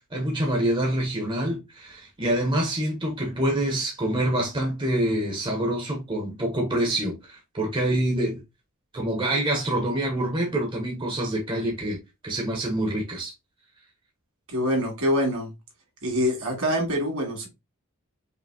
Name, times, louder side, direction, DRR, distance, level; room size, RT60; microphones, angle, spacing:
voice 1, 0.1-8.4 8.9-12.0 12.2-13.3, right 1 dB, 20° right, 0.9 m, -26 dB
voice 2, 14.5-15.5 16.0-17.5, equal, 70° right, 2.3 m, -25 dB
5.1 x 2.8 x 2.7 m
head